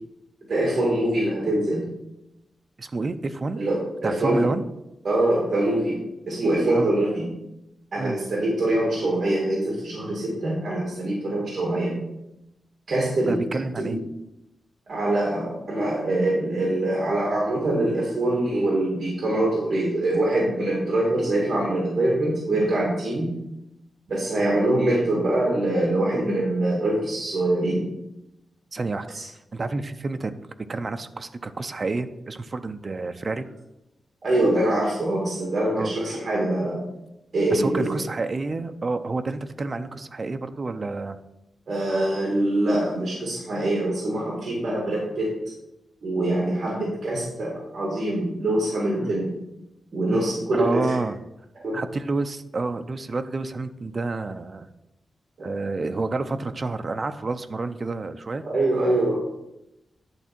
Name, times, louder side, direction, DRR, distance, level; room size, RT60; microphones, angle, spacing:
voice 1, 0.5-1.9 3.6-4.5 5.0-7.3 7.9-12.0 12.9-13.4 13.8-14.0 14.9-23.4 24.1-27.9 29.1-29.2 34.2-36.8 37.3-38.0 41.7-45.4 46.0-49.4 49.9-50.9 51.6-51.8 55.4-55.5 58.4-59.1, right 1 dB, 50° right, -3 dB, 2.1 m, -24 dB
voice 2, 2.8-3.6 4.0-4.6 6.7-6.9 8.0-8.2 13.3-14.0 28.7-29.1 29.5-33.5 35.7-35.9 37.5-41.2 49.0-49.1 50.1-50.2 50.5-51.2 51.7-54.7 55.4-58.4, right 3 dB, 30° right, 9 dB, 0.5 m, -29 dB
10.5 x 3.6 x 5.9 m, 0.90 s
wide cardioid pair, 160°, 0 cm